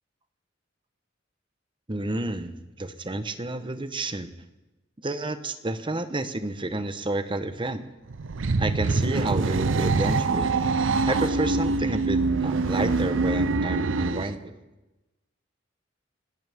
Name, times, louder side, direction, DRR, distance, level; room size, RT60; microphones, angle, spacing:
voice 1, 1.9-2.5 2.8-4.3 5.0-7.9 8.6-10.5 11.1-14.6, right 2 dB, 25° right, 10 dB, 0.9 m, -30 dB
sound 1, 8.1-14.3, right 3 dB, 85° right, 0.6 m, -24 dB
29.0 x 12.5 x 3.6 m, 1.1 s
head